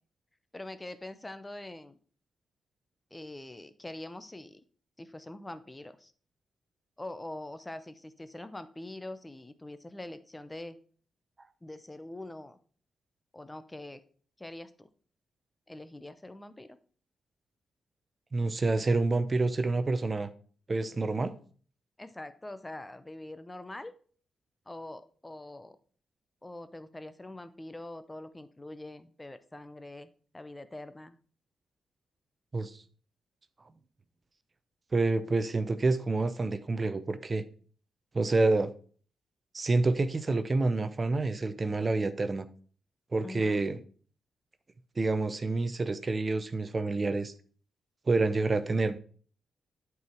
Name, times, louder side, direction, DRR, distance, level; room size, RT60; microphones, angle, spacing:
voice 1, 0.5-2.0 3.1-4.6 5.0-6.1 7.0-10.8 11.6-12.6 13.3-14.0 14.4-14.9 15.7-16.8 22.0-23.9 24.7-25.7 26.4-30.1 30.3-31.2 43.2-43.6, left 1 dB, 20° left, 0.7 m, -44 dB
voice 2, 18.3-20.3 20.7-21.3 32.5-32.8 34.9-37.4 38.1-38.7 39.5-42.5 43.1-43.8 45.0-47.3 48.1-49.0, right 3 dB, 35° right, 0.6 m, -28 dB
8.2 x 4.7 x 4.5 m
supercardioid pair, 55°, 0 cm